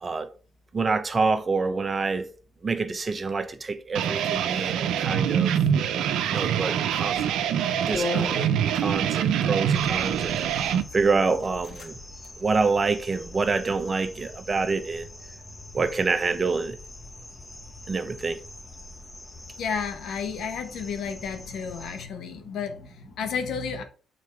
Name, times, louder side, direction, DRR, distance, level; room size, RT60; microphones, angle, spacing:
voice 1, 0.7-2.3 2.6-5.5 6.3-7.3 7.9-8.5 8.7-10.3 10.9-12.0 12.4-15.0 15.7-16.8 17.9-18.4, right 4 dB, 30° right, 0.8 m, -26 dB
sound 1, 3.9-10.8, right 9 dB, 85° right, 0.6 m, -25 dB
sound 2, 7.1-7.3 7.9-9.1 10.0-10.5 11.0-11.1 11.4-11.9 12.2-12.3 12.8-13.5, left 4 dB, 50° left, 2.2 m, -36 dB
voice 2, 7.8-8.2 19.6-23.8, left 6 dB, 75° left, 1.3 m, -32 dB
sound 3, 9.7-22.1, left 2 dB, 20° left, 1.1 m, -44 dB
7.0 x 3.9 x 4.7 m
cardioid pair, 90°, 0 cm